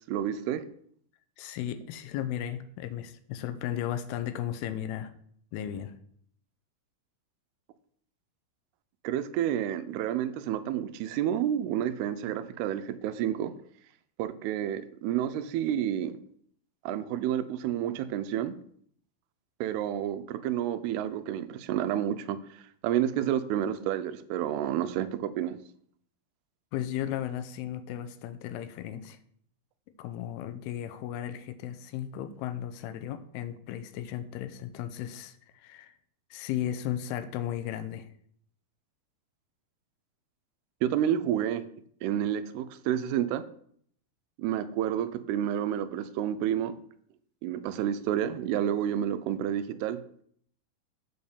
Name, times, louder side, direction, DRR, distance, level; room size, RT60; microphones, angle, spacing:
voice 1, 0.1-0.6 9.0-13.5 14.2-16.2 16.9-18.6 19.6-25.6 40.8-41.6 42.0-43.4 44.4-46.8 47.4-50.0, right 10 dB, 85° right, 13 dB, 2.6 m, -30 dB
voice 2, 1.4-5.1 5.5-5.9 26.7-29.2 30.0-36.0 36.3-38.1, left 11 dB, 85° left, 10 dB, 2.6 m, -35 dB
8.3 x 4.3 x 6.9 m, 0.63 s
omnidirectional pair, 4.5 m